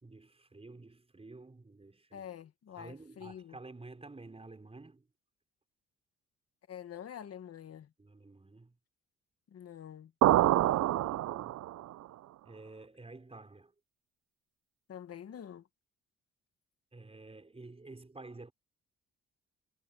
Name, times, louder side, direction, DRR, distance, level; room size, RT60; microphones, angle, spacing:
voice 1, 0.0-2.3 2.8-5.1 8.0-8.8 10.4-11.6 12.5-13.7 16.9-18.5, right 3 dB, 20° right, 5.1 m, -51 dB
voice 2, 2.1-3.6 6.7-7.9 9.5-10.1 14.9-15.7, left 9 dB, 55° left, 1.7 m, -46 dB
sound 1, 10.2-11.9, right 14 dB, 60° right, 0.5 m, -26 dB
cardioid pair, 90°, 30 cm